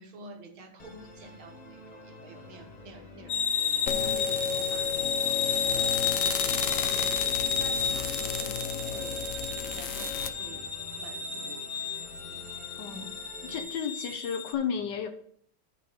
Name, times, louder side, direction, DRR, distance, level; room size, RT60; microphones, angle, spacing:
voice 1, 0.0-3.4 3.6-5.0 5.3-10.7 11.0-11.7, right 2 dB, 75° right, 5 dB, 2.0 m, -49 dB
Musical instrument, 0.8-13.6, left 2 dB, 25° left, 1.0 m, -48 dB
sound 1, 3.3-14.5, left 6 dB, 50° left, 1.6 m, -32 dB
sound 2, 3.9-10.3, left 7 dB, 80° left, 0.7 m, -32 dB
voice 2, 12.8-13.1 13.4-15.1, left 7 dB, 65° left, 7 dB, 1.3 m, -33 dB
11.5 x 4.3 x 5.5 m, 0.63 s
omnidirectional pair, 2.3 m